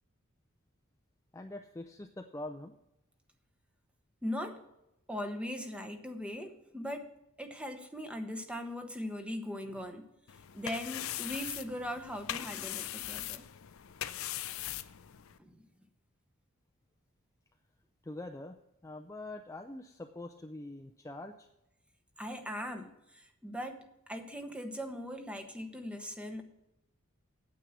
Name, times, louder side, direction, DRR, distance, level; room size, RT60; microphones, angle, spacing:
voice 1, 1.3-2.7 18.0-18.6 18.8-21.5, left 2 dB, 15° left, 4 dB, 0.4 m, -44 dB
voice 2, 4.2-4.7 5.1-10.1 10.5-13.4 15.4-15.6 22.2-26.4, equal, 5° right, 6 dB, 0.9 m, -40 dB
sound 1, 10.3-15.4, left 12 dB, 75° left, 0.5 m, -40 dB
9.0 x 8.5 x 6.1 m, 0.88 s
head